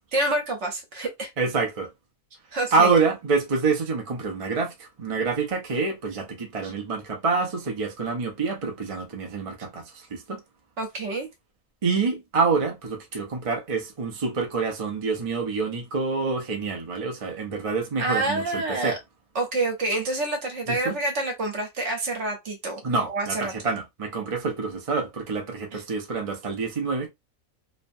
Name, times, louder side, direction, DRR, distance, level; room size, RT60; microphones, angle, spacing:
voice 1, 0.1-1.3 2.5-2.9 6.6-6.7 10.8-11.3 18.0-19.0 19.3-22.8 23.1-23.5 25.7-25.8, right 2 dB, 60° right, 1.2 m, -27 dB
voice 2, 1.4-1.9 2.7-10.4 11.8-19.0 20.7-20.9 22.8-27.1, right 4 dB, 35° right, 0.6 m, -27 dB
3.1 x 2.1 x 2.6 m
omnidirectional pair, 1.4 m